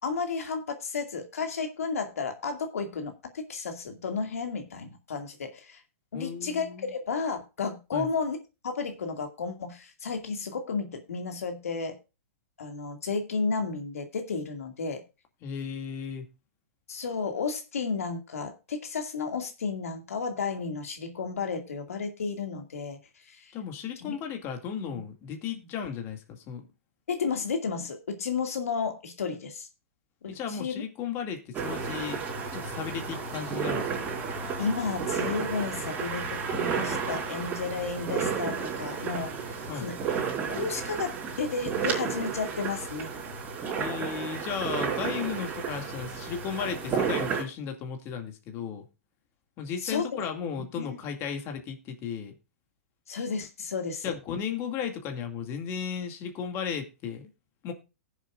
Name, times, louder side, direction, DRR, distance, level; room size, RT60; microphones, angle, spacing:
voice 1, 0.0-5.8 6.1-8.4 8.6-12.0 12.6-15.0 16.9-23.0 23.3-23.5 24.0-24.2 25.5-25.7 27.1-29.7 30.2-30.8 34.6-40.0 40.5-43.1 49.8-50.0 50.8-51.0 53.1-54.0, left 5 dB, 85° left, 2.2 m, -32 dB
voice 2, 6.1-6.9 7.9-8.1 15.4-16.3 23.5-26.6 30.3-32.2 32.5-33.9 39.7-39.9 43.8-48.8 49.6-52.3 54.0-57.3 57.6-57.7, left 7 dB, 30° left, 2.2 m, -35 dB
sound 1, 31.5-47.4, right 6 dB, 20° right, 4.3 m, -32 dB
19.0 x 7.3 x 2.5 m
hypercardioid pair, 140°, 8 cm